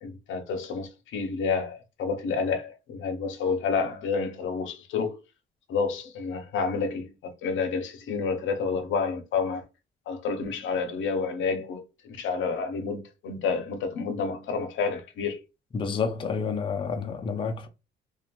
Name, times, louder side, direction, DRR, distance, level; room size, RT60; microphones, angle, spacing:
voice 1, 0.0-5.2 5.7-9.6 10.1-15.4, left 5 dB, 75° left, 0.6 m, -29 dB
voice 2, 15.7-17.7, left 5 dB, 25° left, 0.4 m, -29 dB
2.5 x 2.2 x 2.8 m
cardioid pair, 90°, 20 cm